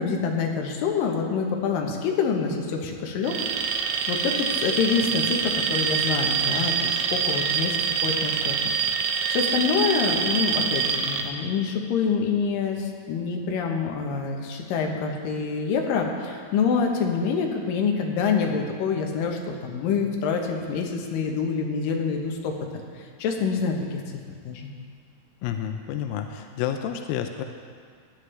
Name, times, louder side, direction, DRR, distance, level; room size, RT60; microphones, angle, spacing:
voice 1, 0.0-3.3 3.8-8.6 9.0-22.8 23.2-24.0 24.4-24.7, left 5 dB, 70° left, 2 dB, 2.4 m, -26 dB
Alarm, 3.2-11.2, right 6 dB, 80° right, 2.8 m, -25 dB
voice 2, 25.4-27.4, left 9 dB, 85° left, 6 dB, 2.1 m, -30 dB
17.0 x 10.5 x 3.3 m, 2.1 s
omnidirectional pair, 4.7 m